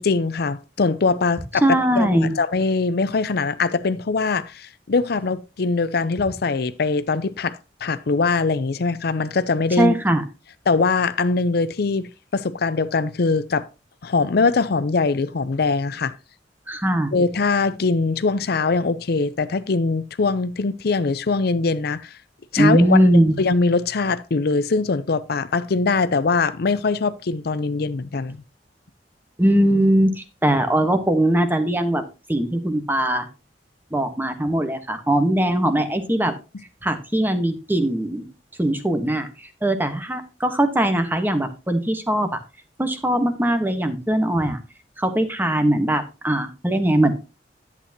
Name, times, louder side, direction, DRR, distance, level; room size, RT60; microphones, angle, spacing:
voice 1, 0.0-1.6 2.0-9.9 10.7-13.7 14.0-16.1 17.1-22.1 22.5-23.1 23.4-28.4, left 4 dB, 65° left, 0.5 m, -22 dB
voice 2, 1.6-2.4 9.8-10.2 16.7-17.1 22.6-23.4 29.4-32.0 32.3-33.3 33.9-36.3 36.8-38.2 38.6-39.3 39.6-42.3 42.8-44.6 45.0-47.2, right 1 dB, 10° right, 1.1 m, -20 dB
11.0 x 8.3 x 2.8 m
head